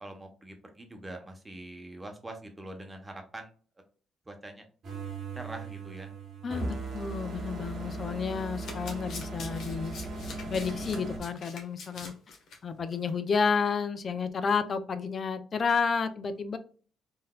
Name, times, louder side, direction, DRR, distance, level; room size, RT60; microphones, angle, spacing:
voice 1, 0.0-3.5 4.2-4.7 5.3-6.1, right 1 dB, 20° right, 4 dB, 0.9 m, -43 dB
sound 1, 4.8-11.2, right 2 dB, 60° right, 1.2 m, -38 dB
voice 2, 6.4-9.9 10.5-12.1 12.6-16.6, left 5 dB, 45° left, 11 dB, 0.5 m, -31 dB
Domestic sounds home sounds, 8.4-12.6 12.9-13.1 13.3-13.4, left 4 dB, 70° left, 1.1 m, -45 dB
3.8 x 2.6 x 2.3 m, 0.40 s
cardioid pair, 90°, 0 cm